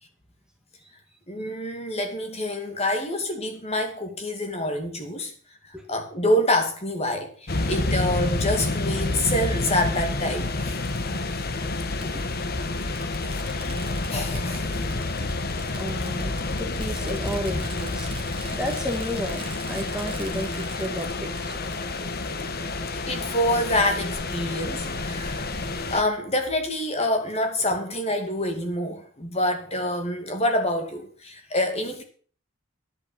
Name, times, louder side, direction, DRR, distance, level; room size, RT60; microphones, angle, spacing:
voice 1, 1.3-5.3 5.7-10.8 14.1-14.9 17.5-17.6 22.9-25.5 25.9-32.0, left 1 dB, 30° left, 2.4 m, -26 dB
sound 1, 7.5-26.0, left 2 dB, 50° left, 1.1 m, -29 dB
Fireworks, 8.7-8.8 10.3-10.4 12.0-12.1 12.6-12.7 13.0-21.8 22.2-22.3, right 4 dB, 25° right, 1.8 m, -43 dB
voice 2, 15.7-16.3 16.6-18.2 18.5-21.6, equal, 5° right, 1.9 m, -32 dB
10.5 x 8.5 x 7.5 m
head